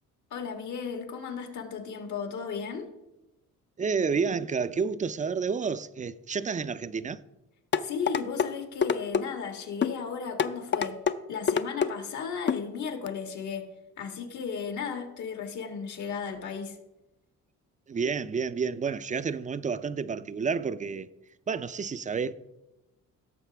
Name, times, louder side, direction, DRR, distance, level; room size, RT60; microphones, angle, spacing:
voice 1, 0.3-2.9 7.8-11.0 11.3-13.7 14.0-16.8, left 6 dB, 70° left, 1.7 m, -35 dB
voice 2, 3.8-7.2 17.9-21.1 21.5-22.3, right 5 dB, 25° right, 0.4 m, -30 dB
sound 1, 7.7-8.5 8.8-9.2 9.8-10.0 10.4-11.2 11.5-11.9 12.5-12.6 13.1-13.2, left 7 dB, 40° left, 0.5 m, -25 dB
17.0 x 6.9 x 3.4 m
cardioid pair, 90°, 30 cm